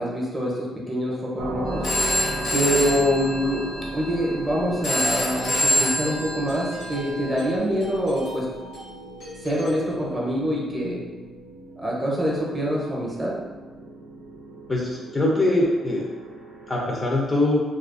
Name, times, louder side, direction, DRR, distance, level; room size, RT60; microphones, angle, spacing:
voice 1, 0.0-1.9 2.5-8.5 9.4-11.0 11.8-13.3, equal, 20° right, -4 dB, 0.7 m, -25 dB
sound 1, 1.4-16.8, right 1 dB, 85° right, 0.6 m, -37 dB
Telephone, 1.7-7.6, left 1 dB, 65° left, 0.8 m, -27 dB
Doorbell, 5.1-10.5, left 1 dB, 90° left, 1.2 m, -42 dB
voice 2, 14.7-16.1 16.7-17.6, left 1 dB, 30° left, -3 dB, 0.5 m, -22 dB
2.4 x 2.3 x 2.4 m, 1.3 s
cardioid pair, 90°, 0 cm